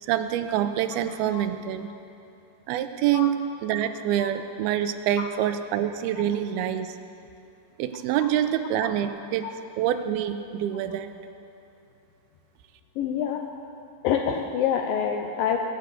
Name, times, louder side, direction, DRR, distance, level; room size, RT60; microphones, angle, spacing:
voice 1, 0.0-1.9 2.7-3.3 3.6-7.0 7.8-9.5 9.8-11.1, right 11 dB, 85° right, 9 dB, 2.7 m, -26 dB
voice 2, 13.0-13.4 14.0-15.6, left 8 dB, 80° left, 3 dB, 2.3 m, -26 dB
23.0 x 8.1 x 7.6 m, 2.6 s
omnidirectional pair, 4.3 m